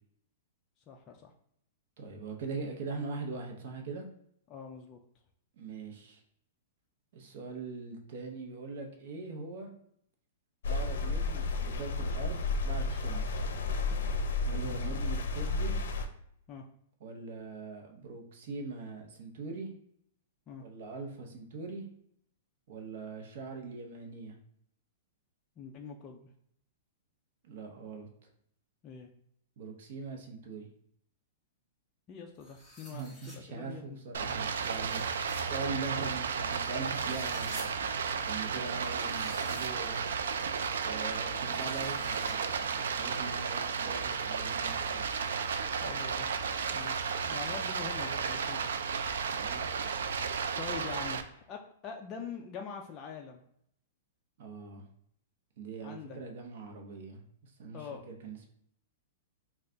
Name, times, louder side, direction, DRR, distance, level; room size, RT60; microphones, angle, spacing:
voice 1, 0.9-1.3 4.5-5.0 14.7-14.9 16.5-16.6 20.5-20.6 25.6-26.3 28.8-29.1 32.1-34.0 45.8-46.3 46.7-48.7 50.6-53.4 55.8-56.2 57.7-58.0, left 6 dB, 25° left, 1 dB, 0.3 m, -44 dB
voice 2, 2.0-4.1 5.6-6.2 7.1-9.7 10.6-13.5 14.4-15.8 17.0-19.7 20.6-21.8 22.7-24.4 27.4-28.1 29.6-30.7 32.9-37.7 38.2-40.1 40.8-45.1 49.3-49.7 54.4-54.8 55.6-58.5, right 4 dB, 55° right, 2 dB, 0.8 m, -42 dB
sound 1, 10.6-16.1, left 3 dB, 80° left, 0.5 m, -32 dB
sound 2, 32.4-33.4 34.5-35.4 36.7-37.6 38.8-39.7 40.4-40.5 41.3-42.3, left 1 dB, 5° right, 1.0 m, -51 dB
Stream, 34.1-51.2, right 6 dB, 90° right, 0.3 m, -33 dB
3.3 x 2.3 x 3.8 m, 0.70 s
hypercardioid pair, 155°, 0 cm